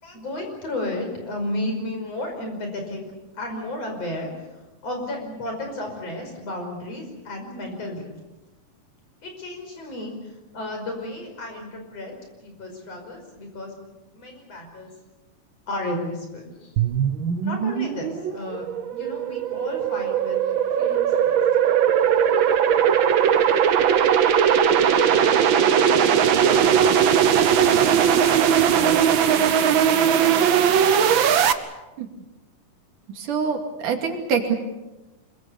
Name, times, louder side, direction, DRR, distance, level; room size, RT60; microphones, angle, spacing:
voice 1, 0.0-3.0 3.3-4.3 4.8-8.1 9.2-12.1 12.4-13.7 14.1-14.9 15.7-16.7 17.4-20.4 20.8-21.4 25.1-26.0 26.4-31.0, left 1 dB, 50° left, 3 dB, 6.4 m, -33 dB
sound 1, 16.8-31.5, right 8 dB, 65° right, 1.2 m, -19 dB
voice 2, 33.2-34.5, right 6 dB, 80° right, 4 dB, 4.0 m, -25 dB
26.0 x 23.0 x 7.1 m, 1.1 s
omnidirectional pair, 3.6 m